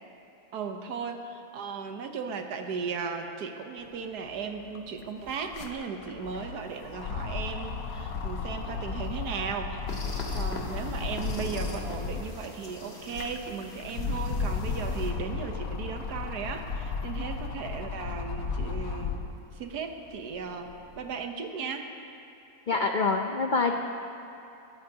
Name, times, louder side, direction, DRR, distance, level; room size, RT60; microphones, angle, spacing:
voice 1, 0.5-9.8 10.3-19.1 19.5-20.7 21.0-21.9, right 5 dB, 80° right, 5 dB, 1.5 m, -36 dB
sound 1, 4.2-4.3 4.6-12.4 12.9-19.4 19.9-21.0, left 4 dB, 65° left, 1.2 m, -34 dB
sound 2, 9.9-15.1, left 2 dB, 40° left, 1.9 m, -43 dB
voice 2, 22.7-23.7, left 4 dB, 80° left, 3 dB, 0.4 m, -25 dB
21.5 x 14.0 x 2.8 m, 2.7 s
omnidirectional pair, 1.7 m